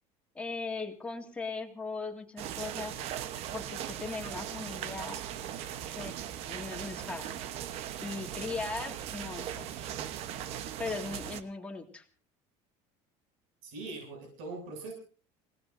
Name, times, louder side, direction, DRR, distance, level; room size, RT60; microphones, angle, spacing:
voice 1, 0.3-3.0 3.5-5.2 5.8-7.4 8.0-9.9 10.8-12.0, left 3 dB, 10° left, 1 dB, 2.1 m, -39 dB
sound 1, 2.4-11.4, right 10 dB, 50° right, 1.0 m, -39 dB
voice 2, 13.6-14.9, right 3 dB, 75° right, 3 dB, 7.3 m, -41 dB
29.0 x 18.0 x 2.7 m, 0.37 s
cardioid pair, 170°, 13 cm